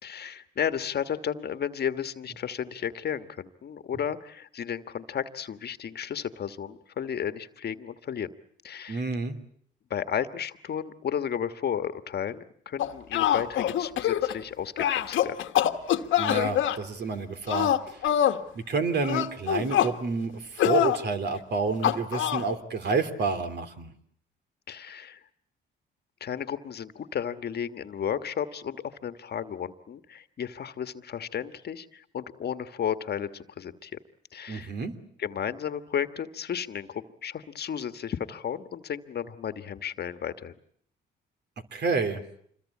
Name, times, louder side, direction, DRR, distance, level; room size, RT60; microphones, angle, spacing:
voice 1, 0.0-8.3 8.6-9.1 9.9-15.4 24.7-25.2 26.2-34.0 34.3-34.7 35.2-40.5, left 8 dB, 55° left, 11 dB, 1.4 m, -33 dB
voice 2, 8.9-9.3 16.2-17.7 18.5-23.9 34.5-34.9 41.7-42.2, right 4 dB, 55° right, 8 dB, 3.1 m, -29 dB
sound 1, 12.8-14.4 14.8-16.8 17.5-18.4 19.0-19.9 20.6-21.0 21.8-22.4, left 11 dB, 80° left, 1.4 m, -25 dB
27.0 x 22.0 x 8.5 m, 0.64 s
cardioid pair, 90°, 20 cm